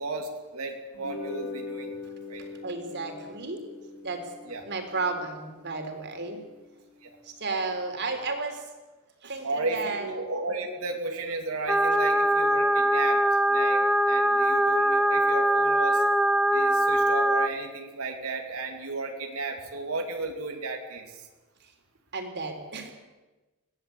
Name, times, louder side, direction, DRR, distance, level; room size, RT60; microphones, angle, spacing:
voice 1, 0.0-2.0 2.3-2.4 4.5-4.6 7.0-7.2 9.4-13.2 13.5-16.0 16.5-21.3, right 3 dB, 85° right, 3 dB, 2.8 m, -34 dB
sound 1, 0.9-7.5, left 3 dB, 85° left, 5.1 m, -42 dB
voice 2, 2.6-3.6 4.0-4.3 4.6-6.4 7.2-8.6 9.2-10.1 16.7-16.8 22.1-22.9, right 3 dB, 55° right, 4 dB, 3.8 m, -33 dB
sound 2, 11.7-17.5, right 1 dB, 5° right, 0.8 m, -22 dB
22.0 x 17.0 x 8.5 m, 1.1 s
head